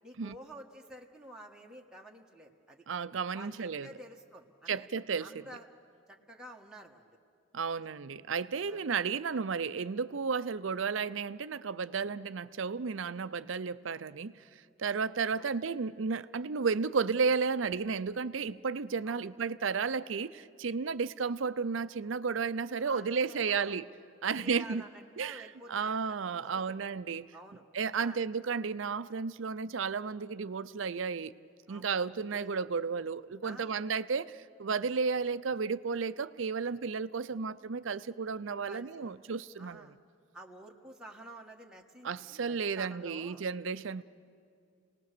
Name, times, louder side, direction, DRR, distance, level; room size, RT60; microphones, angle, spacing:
voice 1, 0.0-2.8 3.3-4.9 5.2-5.7 6.1-7.2 7.7-7.9 8.7-8.8 15.4-15.5 19.0-19.3 22.8-23.8 24.2-26.7 27.3-27.6 28.0-28.2 31.7-32.0 32.3-32.5 33.4-33.8 38.7-39.2 39.6-40.0 40.3-43.4 43.9-44.0, right 1 dB, 5° right, -1 dB, 1.4 m, -50 dB
voice 2, 2.9-3.9 4.7-5.3 7.5-14.3 14.8-23.9 24.2-24.8 25.2-27.3 27.7-31.3 31.7-39.9 42.0-44.0, right 5 dB, 75° right, 14 dB, 0.6 m, -33 dB
29.5 x 19.5 x 6.7 m, 2.3 s
head